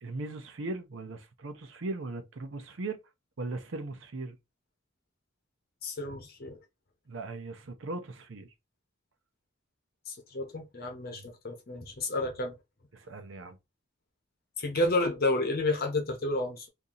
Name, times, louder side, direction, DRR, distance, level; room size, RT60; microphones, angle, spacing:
voice 1, 0.0-3.0 3.4-4.4 7.1-8.5 11.1-11.3 12.9-13.6, right 2 dB, 75° right, 0.7 m, -38 dB
voice 2, 5.8-6.6 10.1-12.5 14.6-16.7, left 2 dB, 50° left, 0.9 m, -31 dB
2.8 x 2.6 x 3.7 m
head